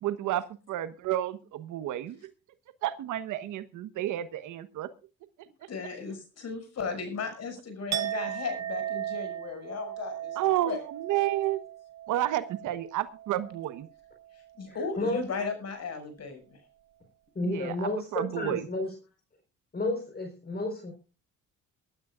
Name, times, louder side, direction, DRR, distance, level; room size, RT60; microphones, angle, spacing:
voice 1, 0.0-2.3 2.8-4.9 10.3-11.6 12.1-13.9 17.4-18.7, right 13 dB, 90° right, 12 dB, 1.2 m, -31 dB
voice 2, 5.7-10.8 14.6-16.6, left 5 dB, 55° left, 7 dB, 6.3 m, -36 dB
Chink clink, 7.9-13.8 14.1-14.5, right 12 dB, 60° right, 0.9 m, -37 dB
voice 3, 14.7-15.2 17.3-18.9 19.7-20.9, left 2 dB, 30° left, 3 dB, 4.2 m, -31 dB
23.0 x 12.5 x 2.5 m, 0.33 s
cardioid pair, 90°, 30 cm